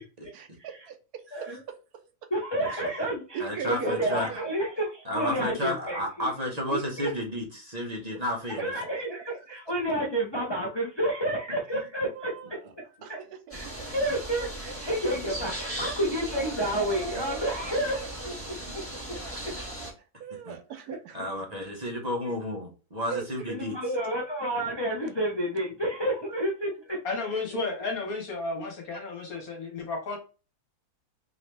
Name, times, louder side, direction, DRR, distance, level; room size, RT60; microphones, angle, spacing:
voice 1, 0.3-2.3 2.8-3.1 3.3-4.5 8.8-8.9 9.7-9.8 12.1-12.7 13.0-13.9 16.1-16.2 16.7-16.8 19.6-21.5 23.1-23.3 27.1-27.4, right 8 dB, 75° right, 8 dB, 1.1 m, -41 dB
voice 2, 2.3-3.4 3.6-6.3 6.7-7.1 8.6-12.3 13.1-13.2 13.5-18.3 23.5-27.0 28.6-28.7 29.3-29.4, right 1 dB, 40° left, -3 dB, 0.4 m, -30 dB
voice 3, 3.4-4.3 5.0-8.6 20.5-20.6 21.1-23.7, left 1 dB, 30° right, -1 dB, 0.9 m, -32 dB
sound 1, 13.5-19.9, right 1 dB, 10° left, 1.4 m, -37 dB
voice 4, 27.0-30.2, left 3 dB, 65° left, 1 dB, 1.6 m, -33 dB
3.7 x 3.0 x 3.3 m, 0.34 s
omnidirectional pair, 1.7 m